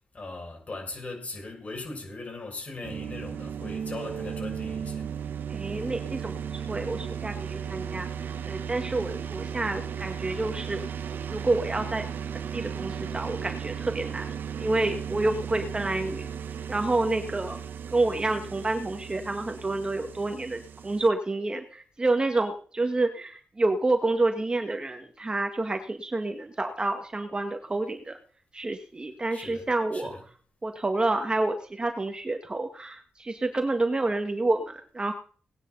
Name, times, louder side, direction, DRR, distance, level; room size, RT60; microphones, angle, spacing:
voice 1, 0.1-5.1 29.3-29.7 29.9-30.2, left 3 dB, 40° left, 6.4 m, -39 dB
sound 1, 2.8-21.1, right 8 dB, 75° right, 1.1 m, -35 dB
voice 2, 5.5-8.1 8.5-10.8 11.3-12.1 12.5-16.3 16.7-17.6 17.9-28.2 28.5-30.1 30.6-35.1, right 2 dB, 25° right, 1.9 m, -28 dB
19.0 x 9.9 x 4.1 m
cardioid pair, 85°, 3 cm